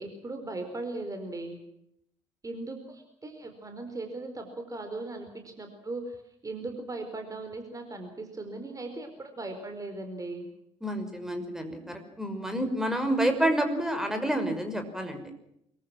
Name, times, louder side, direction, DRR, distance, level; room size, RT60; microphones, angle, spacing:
voice 1, 0.0-1.6 2.4-10.5, right 2 dB, 20° right, 6 dB, 4.7 m, -38 dB
voice 2, 10.8-15.2, right 1 dB, 5° right, 7 dB, 5.7 m, -29 dB
25.0 x 23.0 x 6.1 m, 0.75 s
figure-of-eight pair, 55°, 15 cm